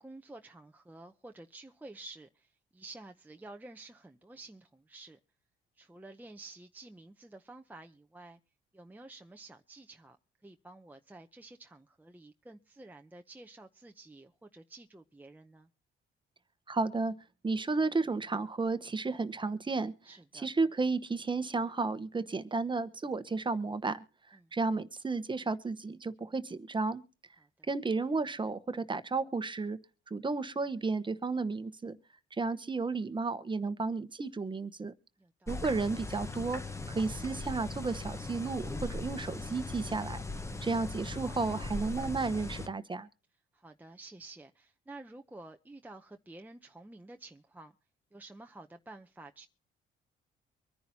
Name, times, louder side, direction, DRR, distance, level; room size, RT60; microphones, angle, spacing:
voice 1, 0.0-5.2 5.8-8.4 8.7-10.2 10.4-15.7 20.0-20.5 24.3-24.5 27.4-27.7 35.2-35.6 40.5-40.7 43.5-47.7 48.1-49.5, right 2 dB, 10° right, 0.7 m, -51 dB
voice 2, 16.7-17.1 17.4-19.9 20.3-24.0 24.5-27.0 27.7-29.8 30.1-32.0 32.4-34.9 35.5-36.6 36.9-40.2 40.6-43.1, right 3 dB, 25° right, 1.1 m, -33 dB
sound 1, 35.5-42.7, left 3 dB, 15° left, 1.1 m, -39 dB
24.5 x 10.5 x 2.8 m
cardioid pair, 90°, 20 cm